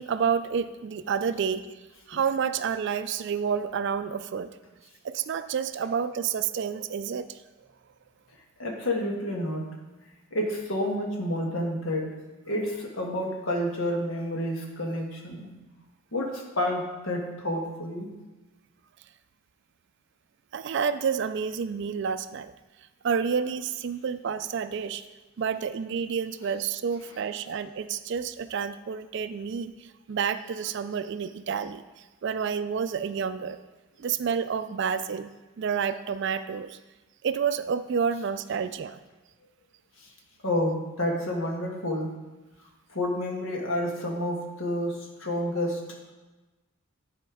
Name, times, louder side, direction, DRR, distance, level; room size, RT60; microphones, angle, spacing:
voice 1, 0.0-1.6 2.1-4.5 5.0-7.4 20.5-22.5 23.0-25.0 25.4-29.7 30.1-31.8 32.2-33.6 34.0-35.3 35.6-36.8 37.2-39.0, right 6 dB, 55° right, 12 dB, 0.3 m, -29 dB
voice 2, 8.6-9.7 10.3-12.1 12.5-15.5 16.1-18.1 40.4-42.1 42.9-45.8, left 1 dB, 65° left, 0 dB, 1.5 m, -29 dB
10.5 x 4.3 x 4.9 m, 1.2 s
head